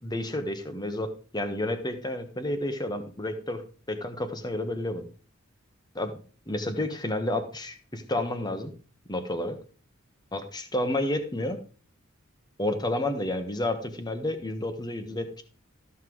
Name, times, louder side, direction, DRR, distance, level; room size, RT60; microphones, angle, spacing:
voice 1, 0.0-3.6 3.9-5.1 5.9-6.2 6.5-8.7 9.1-9.6 10.3-11.6 12.6-15.4, left 1 dB, 20° left, 7 dB, 1.3 m, -30 dB
14.0 x 5.9 x 4.7 m, 0.39 s
head